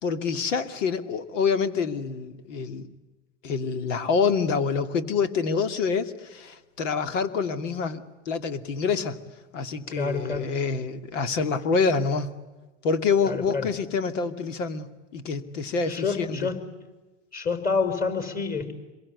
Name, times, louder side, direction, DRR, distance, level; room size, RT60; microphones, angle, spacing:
voice 1, 0.0-2.9 3.4-9.2 9.5-12.4 12.8-14.9 15.1-16.5, left 5 dB, 75° left, 10 dB, 2.6 m, -26 dB
voice 2, 9.9-10.5 13.2-13.7 15.9-16.6 17.3-18.7, left 4 dB, 25° left, 10 dB, 5.1 m, -28 dB
26.5 x 23.0 x 9.6 m, 1.2 s
hypercardioid pair, 120°, 37 cm